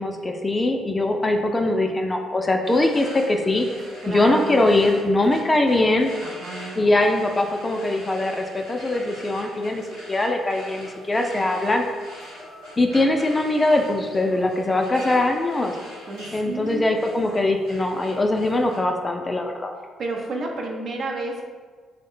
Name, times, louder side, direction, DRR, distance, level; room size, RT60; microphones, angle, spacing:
voice 1, 0.0-3.7 4.1-6.1 6.7-9.8 10.1-11.8 12.8-15.7 16.3-19.7, left 2 dB, 25° left, 3 dB, 0.4 m, -21 dB
sound 1, 2.6-18.8, equal, 80° right, 1.0 m, -42 dB
voice 2, 4.0-4.9 6.2-7.0 16.1-17.0 20.0-21.5, right 2 dB, 55° right, 0 dB, 0.5 m, -31 dB
3.0 x 2.1 x 3.6 m, 1.5 s
hypercardioid pair, 45°, 0 cm